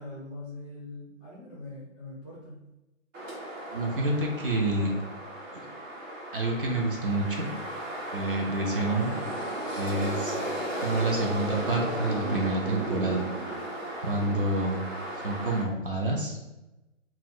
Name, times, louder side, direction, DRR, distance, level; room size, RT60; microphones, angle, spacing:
voice 1, 0.0-2.6, left 2 dB, 5° left, -10 dB, 0.5 m, -42 dB
sound 1, 3.1-15.6, right 1 dB, 70° right, 1.5 m, -35 dB
voice 2, 3.7-4.9 5.5-5.7 6.3-7.5 8.1-9.1 9.8-10.4 10.8-13.2 14.0-14.8 15.2-16.4, right 2 dB, 45° right, 1 dB, 0.5 m, -28 dB
2.8 x 2.1 x 3.8 m, 1.0 s
hypercardioid pair, 155°, 39 cm